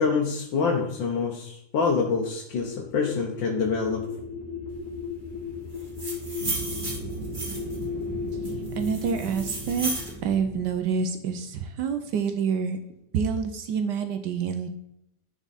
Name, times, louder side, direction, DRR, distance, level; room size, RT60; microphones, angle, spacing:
voice 1, 0.0-4.1, left 5 dB, 90° left, 0 dB, 1.7 m, -26 dB
sound 1, 2.5-10.8, left 5 dB, 60° left, 1.8 m, -36 dB
sound 2, 5.8-7.8 8.4-10.1, right 1 dB, 25° right, 2.2 m, -34 dB
sound 3, 6.4-12.6, right 7 dB, 90° right, 1.5 m, -40 dB
voice 2, 8.8-9.9 10.2-12.8 13.1-14.7, right 6 dB, 70° right, 7 dB, 1.3 m, -27 dB
10.5 x 4.8 x 4.1 m, 0.83 s
omnidirectional pair, 2.0 m